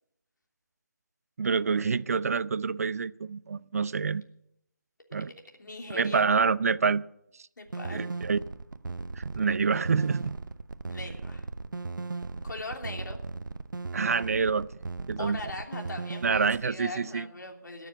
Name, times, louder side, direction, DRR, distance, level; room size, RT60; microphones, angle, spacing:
voice 1, 1.4-4.2 5.1-5.3 5.9-7.0 7.9-8.4 9.2-10.4 13.9-14.7 15.1-15.4 16.2-17.3, right 5 dB, 50° right, 18 dB, 0.5 m, -27 dB
voice 2, 5.6-6.3 7.6-8.1 10.9-11.4 12.4-13.2 15.2-17.9, left 2 dB, 70° left, 2 dB, 3.2 m, -40 dB
sound 1, 7.7-16.6, right 3 dB, 85° right, 0.8 m, -37 dB
18.5 x 7.2 x 8.1 m, 0.80 s
figure-of-eight pair, 165°, 10 cm